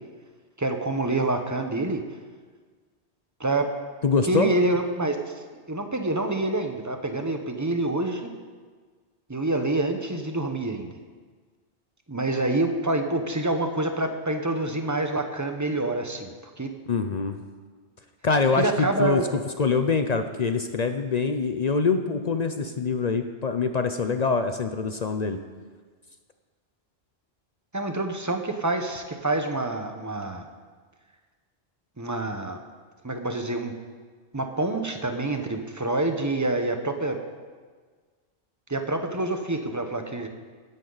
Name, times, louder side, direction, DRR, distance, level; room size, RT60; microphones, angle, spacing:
voice 1, 0.6-2.0 3.4-3.7 4.2-5.3 5.7-8.3 9.3-10.9 12.1-16.7 18.6-19.2 27.7-30.4 32.0-32.6 33.0-33.7 34.3-37.2 38.7-40.3, right 2 dB, 15° right, 5 dB, 0.9 m, -27 dB
voice 2, 4.0-4.5 16.9-17.4 18.2-19.2 19.6-25.4, left 4 dB, 45° left, 8 dB, 0.6 m, -24 dB
16.5 x 11.0 x 4.0 m, 1.5 s
omnidirectional pair, 1.2 m